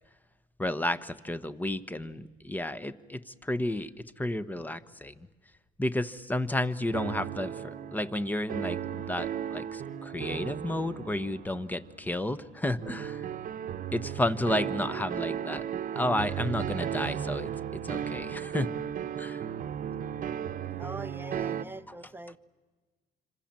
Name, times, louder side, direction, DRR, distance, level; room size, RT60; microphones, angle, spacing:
voice 1, 0.6-3.9 4.2-5.3 5.8-13.2 13.9-15.6 15.9-17.5 17.8-18.7 19.2-19.4, left 1 dB, 10° left, 13 dB, 1.0 m, -32 dB
sound 1, 6.9-21.6, right 9 dB, 50° right, 1.0 m, -35 dB
voice 2, 20.8-22.4, right 2 dB, 10° right, 13 dB, 0.7 m, -42 dB
26.5 x 26.0 x 7.6 m, 1.4 s
cardioid pair, 110°, 17 cm